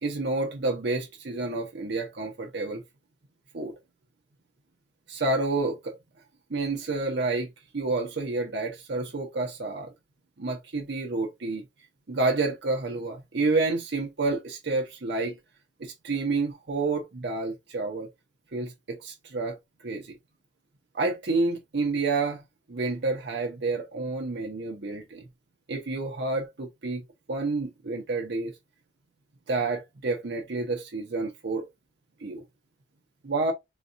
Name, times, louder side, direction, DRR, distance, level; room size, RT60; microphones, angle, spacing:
voice 1, 0.0-2.8 3.5-3.7 5.1-6.0 6.5-9.9 10.4-11.6 12.1-15.4 15.8-18.1 18.5-20.2 20.9-22.4 22.7-25.3 25.7-27.0 27.3-28.5 29.5-31.7 32.2-32.4 33.2-33.5, right 3 dB, 70° right, 0.7 m, -29 dB
4.0 x 2.3 x 2.6 m
head